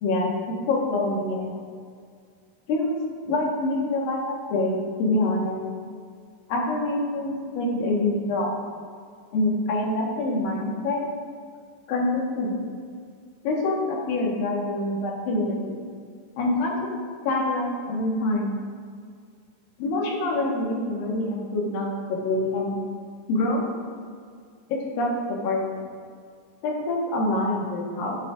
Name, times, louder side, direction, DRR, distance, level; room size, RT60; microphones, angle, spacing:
voice 1, 0.0-1.6 2.7-3.0 3.3-5.6 6.5-8.5 9.3-11.0 11.9-12.7 13.4-15.7 16.4-18.5 19.8-22.7 23.3-23.7 24.7-25.8 26.6-28.2, left 2 dB, 90° left, -2 dB, 3.1 m, -26 dB
10.5 x 9.6 x 2.5 m, 2.1 s
omnidirectional pair, 3.9 m